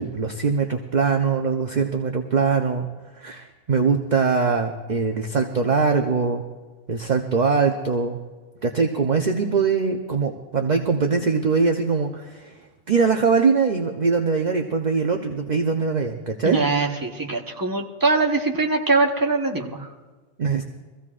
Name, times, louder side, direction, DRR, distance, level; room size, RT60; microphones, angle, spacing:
voice 1, 0.0-2.9 3.2-6.4 6.9-8.2 8.6-12.5 12.9-16.6 20.4-20.6, right 5 dB, 40° right, 4 dB, 0.8 m, -22 dB
voice 2, 16.4-19.9, right 3 dB, 20° right, 1 dB, 1.1 m, -22 dB
23.5 x 15.5 x 2.5 m, 1.3 s
omnidirectional pair, 1.3 m